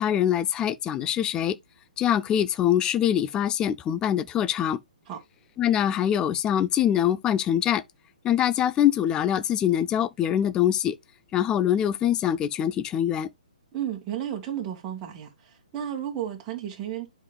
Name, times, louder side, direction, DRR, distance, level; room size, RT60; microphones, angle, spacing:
voice 1, 0.0-1.6 2.0-4.8 5.6-7.8 8.2-11.0 11.3-13.3, left 10 dB, 15° left, 0.5 m, -24 dB
voice 2, 13.7-17.1, right 10 dB, 25° right, 1.8 m, -33 dB
11.0 x 5.1 x 2.3 m
hypercardioid pair, 140°, 4 cm